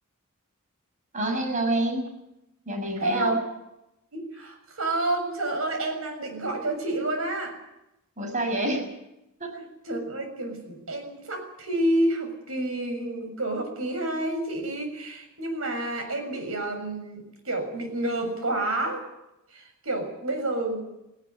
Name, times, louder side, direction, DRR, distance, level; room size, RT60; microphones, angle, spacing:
voice 1, 1.1-2.1 2.7-3.4 8.2-8.9 9.4-9.6, right 1 dB, 35° right, 4 dB, 7.1 m, -27 dB
voice 2, 3.0-3.4 4.1-7.6 9.5-19.0 19.5-20.8, right 1 dB, 80° right, 5 dB, 7.0 m, -29 dB
18.5 x 18.0 x 9.9 m, 0.90 s
head